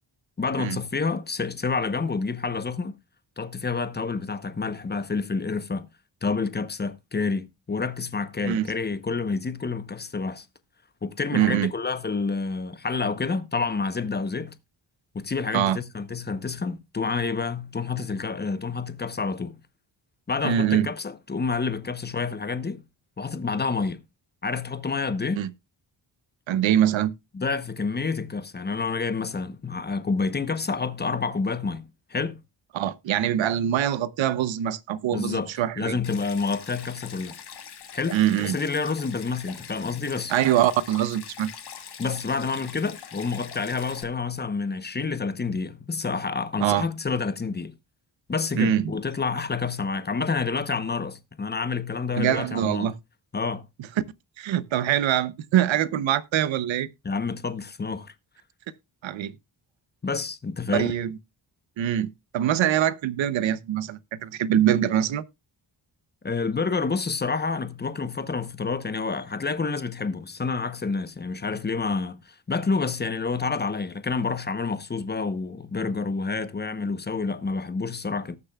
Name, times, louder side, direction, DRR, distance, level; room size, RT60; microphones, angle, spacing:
voice 1, 0.4-3.0 3.4-5.9 6.2-10.5 11.0-14.5 15.1-19.5 20.3-22.8 23.2-24.0 24.4-25.4 27.3-32.4 35.1-37.4 37.9-40.3 42.0-47.7 48.3-52.9 53.3-53.6 57.0-58.1 60.0-60.9 66.2-78.4, left 4 dB, 20° left, 0.8 m, -28 dB
voice 2, 11.3-11.7 15.5-15.8 20.4-20.9 25.4-25.5 26.5-27.1 32.7-36.0 38.1-38.6 40.3-41.5 46.6-46.9 48.6-48.9 52.1-52.9 54.4-56.9 59.0-59.3 60.7-61.2 61.8-65.2, right 11 dB, 85° right, 0.8 m, -24 dB
Stream, 36.0-44.0, left 7 dB, 60° left, 1.6 m, -43 dB
18.5 x 6.8 x 2.3 m
wide cardioid pair, 120°, 45 cm